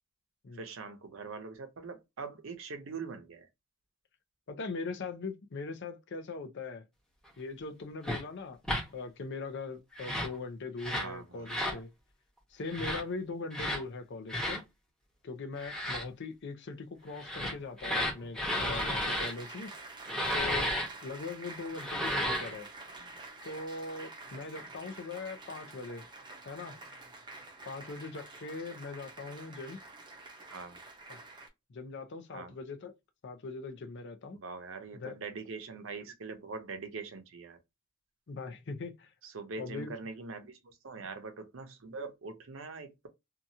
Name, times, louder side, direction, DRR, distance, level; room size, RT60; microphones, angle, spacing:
voice 1, 0.5-3.5 11.0-11.5 30.5-30.8 32.3-32.5 34.3-37.6 39.2-43.1, right 4 dB, 65° right, 0.6 m, -43 dB
voice 2, 4.5-6.8 7.4-8.6 8.9-11.9 12.5-14.6 15.2-19.7 20.3-20.7 21.0-22.7 23.4-26.0 26.5-26.8 27.7-29.8 31.1-31.2 31.7-32.9 33.2-34.4 34.9-35.2 38.3-39.1 39.6-39.9, left 3 dB, 55° left, 0.5 m, -41 dB
sound 1, 8.0-8.2 8.6-8.8 9.9-10.3 10.8-11.1 11.5-11.8 12.7-13.0 13.5-13.8 14.3-14.6 15.6-16.0 17.1-19.3 20.1-20.9 21.7-22.5, equal, 5° left, 0.9 m, -32 dB
Applause, 18.6-31.5, right 2 dB, 20° right, 0.6 m, -48 dB
2.8 x 2.3 x 2.6 m
head